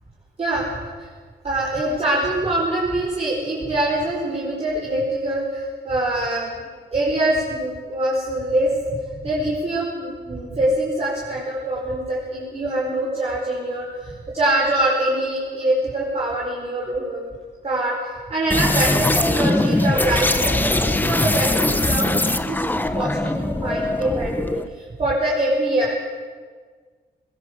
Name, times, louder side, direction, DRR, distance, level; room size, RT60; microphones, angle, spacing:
voice 1, 1.4-6.5 6.9-9.0 9.2-17.2 17.6-24.6 25.0-26.0, right 1 dB, 35° right, -5 dB, 5.0 m, -24 dB
sound 1, 18.5-24.7, left 2 dB, 10° left, 1.0 m, -21 dB
22.0 x 21.0 x 8.3 m, 1.5 s
wide cardioid pair, 160°, 18 cm